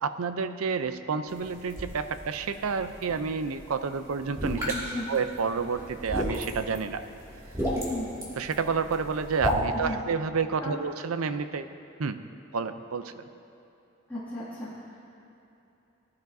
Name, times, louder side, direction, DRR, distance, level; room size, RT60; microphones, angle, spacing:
voice 1, 0.0-4.7 5.1-7.0 8.4-11.7 12.0-12.2 12.5-13.2, right 5 dB, 90° right, 11 dB, 0.5 m, -30 dB
sound 1, 1.3-9.5, equal, 15° right, 2.2 m, -35 dB
voice 2, 4.7-5.1 7.6-8.1 9.8-10.0 10.6-10.8 14.1-15.0, left 1 dB, 10° left, -12 dB, 2.2 m, -35 dB
19.0 x 11.5 x 2.7 m, 3.0 s
head